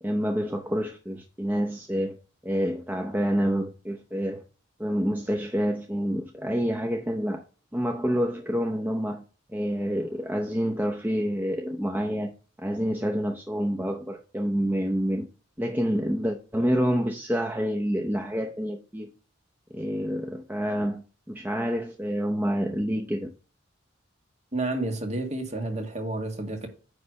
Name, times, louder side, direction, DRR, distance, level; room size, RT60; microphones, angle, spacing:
voice 1, 0.0-2.2 2.4-4.4 4.8-7.4 7.7-9.2 9.5-12.3 12.6-15.3 15.6-19.1 19.7-23.3, equal, 10° right, 0.7 m, -28 dB
voice 2, 24.5-26.7, right 2 dB, 35° right, 1.8 m, -30 dB
9.5 x 3.3 x 6.3 m
head